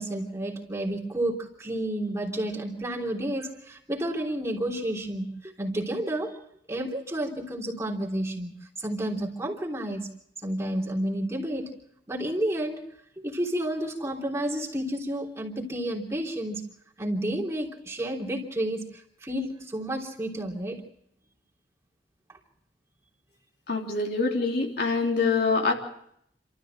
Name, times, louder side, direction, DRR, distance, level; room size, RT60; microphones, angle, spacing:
voice 1, 0.0-6.4 6.7-8.5 8.8-10.1 10.4-11.7 12.1-12.8 13.2-16.6 17.0-18.9 19.2-20.8, right 1 dB, 15° right, -2 dB, 3.5 m, -30 dB
voice 2, 23.7-25.7, left 4 dB, 65° left, 0 dB, 3.6 m, -25 dB
28.0 x 13.5 x 7.6 m, 0.71 s
head